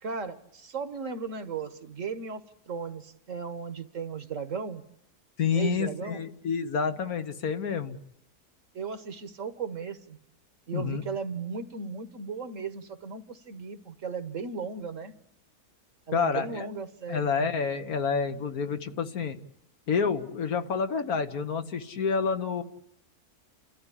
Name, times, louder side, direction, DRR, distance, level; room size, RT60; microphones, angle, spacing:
voice 1, 0.0-4.8 5.5-6.2 8.7-10.2 10.7-15.1 16.1-17.4, right 5 dB, 55° right, 11 dB, 1.5 m, -36 dB
voice 2, 5.4-8.0 10.7-11.0 16.1-16.7 17.1-19.4 19.9-22.6, left 6 dB, 70° left, 8 dB, 1.7 m, -28 dB
29.5 x 14.0 x 9.9 m, 0.77 s
omnidirectional pair, 1.6 m